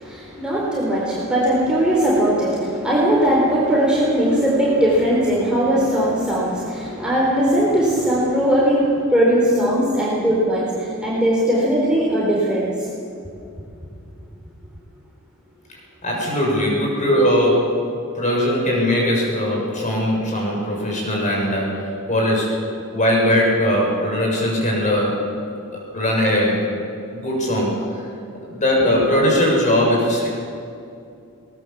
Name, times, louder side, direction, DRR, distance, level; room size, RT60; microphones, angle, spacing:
voice 1, 0.0-13.1, right 1 dB, 5° right, -6 dB, 4.0 m, -19 dB
voice 2, 16.0-17.7 18.1-21.7 22.1-22.6 22.9-25.2 25.7-26.7 27.1-27.7 28.5-30.3, equal, 35° left, -2 dB, 6.8 m, -19 dB
21.5 x 20.0 x 7.4 m, 2.5 s
head